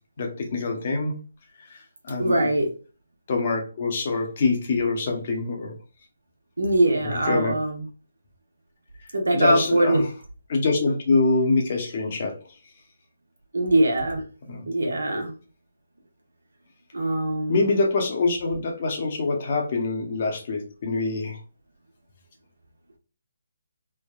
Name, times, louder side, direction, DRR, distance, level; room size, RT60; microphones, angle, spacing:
voice 1, 0.2-1.2 1.7-2.5 3.3-5.7 7.0-7.6 9.3-10.1 10.5-12.3 14.5-14.6 17.5-21.4, left 3 dB, 45° left, 2 dB, 0.8 m, -25 dB
voice 2, 2.2-2.7 6.6-7.8 9.1-10.0 13.5-14.2 14.7-15.3 16.9-17.6, right 1 dB, 85° right, 3 dB, 0.9 m, -22 dB
3.4 x 2.2 x 2.2 m, 0.36 s
figure-of-eight pair, 150°, 0 cm